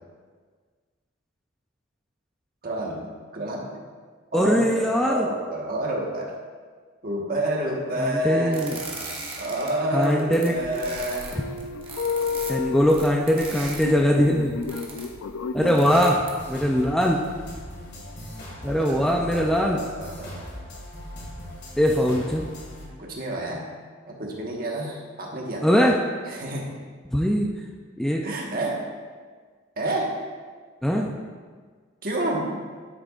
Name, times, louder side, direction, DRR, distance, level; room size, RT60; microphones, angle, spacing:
voice 1, 2.6-3.0 3.3-3.7 4.3-6.3 7.0-8.6 9.4-11.4 15.6-16.0 18.6-20.5 23.0-23.6 24.1-25.7 26.3-26.8 28.2-28.9 29.8-30.2 32.0-32.5, right 1 dB, 45° right, -1 dB, 1.3 m, -29 dB
voice 2, 4.3-5.3 8.0-8.8 9.9-10.5 12.5-14.6 15.5-17.2 18.6-19.8 21.8-22.5 25.6-26.0 27.1-27.5 28.0-28.2 30.8-31.1, equal, ahead, -1 dB, 0.4 m, -21 dB
sound 1, 8.5-9.7 10.0-13.8 14.6-15.2 15.7-16.5, right 3 dB, 25° right, 1.2 m, -38 dB
sound 2, 10.5-16.1, left 5 dB, 85° left, 0.4 m, -32 dB
sound 3, 16.4-22.9, equal, 50° left, 2.0 m, -39 dB
10.0 x 8.8 x 2.4 m, 1.6 s
head